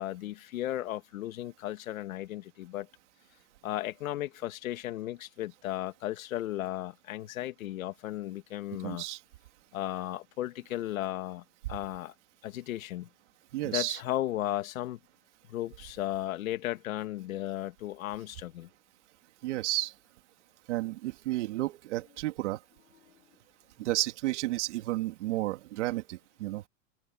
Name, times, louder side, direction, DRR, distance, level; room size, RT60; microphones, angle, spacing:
voice 1, 0.0-2.9 3.6-9.0 9.7-12.1 12.4-13.1 13.6-15.0 15.5-18.7, left 14 dB, 80° left, 2.2 m, -35 dB
voice 2, 8.8-9.2 13.5-14.0 19.4-19.9 20.7-22.6 23.8-26.6, right 17 dB, 60° right, 3.2 m, -32 dB
open air
supercardioid pair, 175°, 40 cm